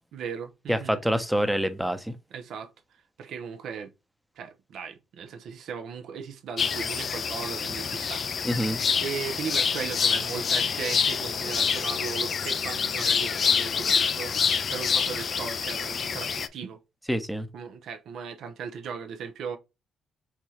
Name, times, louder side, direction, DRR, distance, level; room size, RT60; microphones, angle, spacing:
voice 1, 0.1-1.0 2.3-2.7 3.2-3.9 4.4-8.5 9.0-14.4 14.7-16.8 17.5-19.6, right 6 dB, 75° right, 0.8 m, -37 dB
voice 2, 0.7-2.2 8.4-8.8 17.1-17.5, equal, ahead, 0.8 m, -26 dB
sound 1, 6.6-16.5, left 6 dB, 50° left, 0.4 m, -27 dB
4.7 x 2.4 x 4.3 m
cardioid pair, 90°, 0 cm